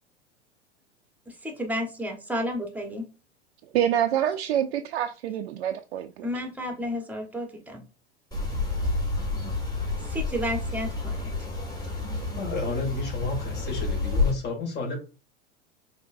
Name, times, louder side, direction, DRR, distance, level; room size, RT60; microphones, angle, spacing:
voice 1, 1.3-3.1 6.2-7.8 10.1-11.3, equal, 5° right, 3 dB, 1.2 m, -32 dB
voice 2, 3.7-6.3, right 10 dB, 65° right, 5 dB, 0.5 m, -26 dB
sound 1, 8.3-14.3, left 3 dB, 10° left, 2.0 m, -29 dB
voice 3, 12.4-15.0, left 3 dB, 30° left, 3 dB, 2.0 m, -31 dB
5.1 x 3.6 x 2.6 m, 0.33 s
hypercardioid pair, 95°, 34 cm